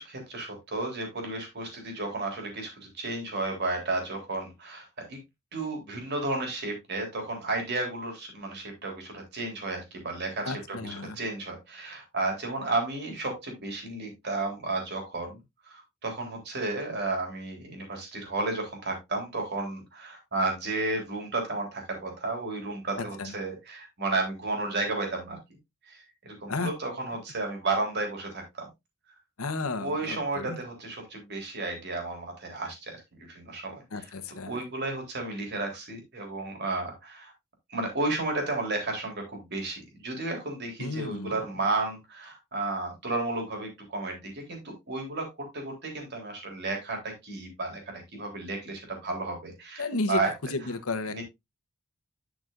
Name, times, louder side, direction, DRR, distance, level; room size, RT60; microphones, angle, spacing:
voice 1, 0.0-5.2 5.5-15.4 15.7-25.4 25.9-28.7 29.8-33.0 33.3-37.3 37.7-50.3 51.1-51.2, right 2 dB, 50° right, 3.6 m, -33 dB
voice 2, 10.4-11.2 23.0-23.3 26.5-26.7 29.4-30.6 33.9-34.6 40.8-41.4 49.8-51.2, left 3 dB, 75° left, 1.1 m, -33 dB
11.5 x 6.1 x 2.6 m
head